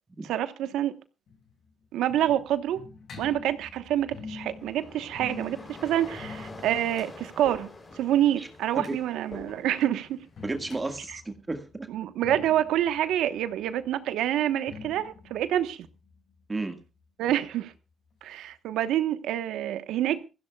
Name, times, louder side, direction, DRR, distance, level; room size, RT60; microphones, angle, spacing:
voice 1, 0.3-0.9 1.9-2.8 3.2-7.7 8.0-10.2 11.9-15.9 17.2-17.7 18.2-20.3, right 11 dB, 85° right, 1.1 m, -27 dB
sound 1, 1.3-9.0 10.1-17.5 17.7-17.8 18.1-18.2 18.8-18.9, left 5 dB, 60° left, 5.7 m, -47 dB
sound 2, 4.2-10.8, left 2 dB, 25° left, 3.4 m, -46 dB
voice 2, 10.4-11.9 16.5-16.8, right 2 dB, 20° right, 1.8 m, -33 dB
23.5 x 15.5 x 2.3 m
cardioid pair, 90°, 0 cm